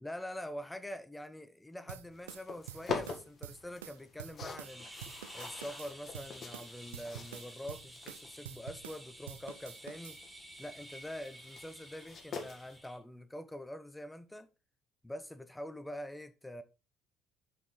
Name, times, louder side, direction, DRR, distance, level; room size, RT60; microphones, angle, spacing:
voice 1, 0.0-4.9 5.3-10.2 10.6-14.5 15.0-16.6, left 1 dB, 10° left, 0.8 m, -45 dB
sound 1, 1.9-4.8 5.0-9.0 9.3-10.2, right 11 dB, 80° right, 0.5 m, -48 dB
sound 2, 2.1-12.8, left 5 dB, 40° left, 1.7 m, -46 dB
sound 3, 4.6-13.0, right 1 dB, 10° right, 2.0 m, -52 dB
5.9 x 5.6 x 4.3 m
figure-of-eight pair, 55°, 0 cm